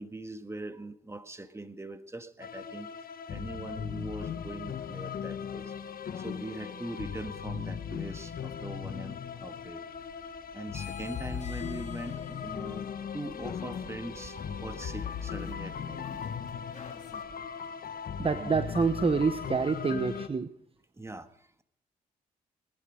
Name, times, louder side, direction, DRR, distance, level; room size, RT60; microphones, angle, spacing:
voice 1, 0.0-5.7 6.1-9.8 10.5-12.9 13.1-16.1 18.4-18.5 21.0-21.6, right 1 dB, 15° right, 9 dB, 1.6 m, -42 dB
sound 1, 2.4-20.3, left 7 dB, 60° left, 1.1 m, -38 dB
Bird vocalization bird call bird song, 8.4-17.4, right 4 dB, 60° right, 2.3 m, -57 dB
sound 2, 10.7-17.2, left 6 dB, 45° left, 2.4 m, -49 dB
voice 2, 18.2-20.5, right 5 dB, 35° right, 11 dB, 0.9 m, -27 dB
20.0 x 11.0 x 5.2 m, 0.73 s
supercardioid pair, 50°, 17 cm